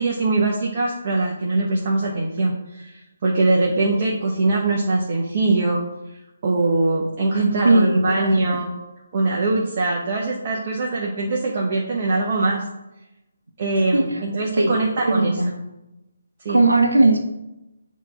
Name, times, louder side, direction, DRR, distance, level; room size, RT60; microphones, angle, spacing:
voice 1, 0.0-5.8 6.4-8.7 9.1-12.6 13.6-15.3 16.4-16.6, right 2 dB, 35° right, -3 dB, 1.1 m, -22 dB
voice 2, 7.6-8.1 8.4-8.6 13.9-14.2 14.5-14.7 15.0-15.5 16.5-17.2, right 2 dB, 70° right, 0 dB, 1.0 m, -18 dB
8.2 x 3.1 x 5.6 m, 0.95 s
figure-of-eight pair, 145°, 0 cm